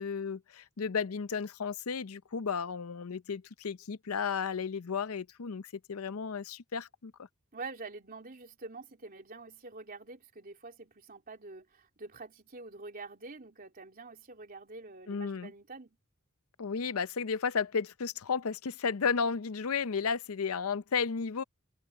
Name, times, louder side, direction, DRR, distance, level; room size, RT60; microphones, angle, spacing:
voice 1, 0.0-7.3 15.1-15.5 16.6-21.4, left 5 dB, 85° left, 0.6 m, -33 dB
voice 2, 7.5-16.0, right 3 dB, 45° right, 3.1 m, -46 dB
head